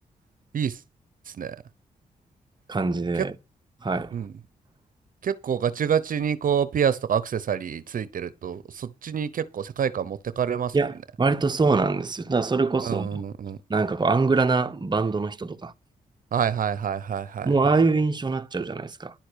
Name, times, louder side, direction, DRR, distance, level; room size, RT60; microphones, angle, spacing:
voice 1, 2.7-3.3 3.8-4.1 10.7-13.2 13.7-15.7 17.4-19.1, right 4 dB, 30° right, 1.0 m, -24 dB
voice 2, 5.2-10.8 12.8-13.6 16.3-17.5, right 8 dB, 65° right, 0.8 m, -27 dB
11.0 x 5.8 x 6.8 m
cardioid pair, 70°, 15 cm